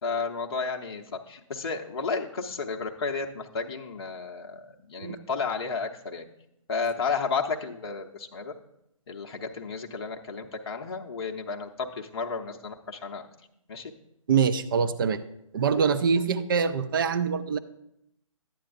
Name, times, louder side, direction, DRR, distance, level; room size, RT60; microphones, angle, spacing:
voice 1, 0.0-6.2 6.7-8.5 9.1-13.2 13.7-13.9, left 4 dB, 45° left, 2 dB, 0.7 m, -32 dB
voice 2, 14.3-15.2 15.5-17.6, right 6 dB, 40° right, 11 dB, 0.5 m, -24 dB
11.5 x 8.7 x 2.5 m, 0.81 s
figure-of-eight pair, 140°, 18 cm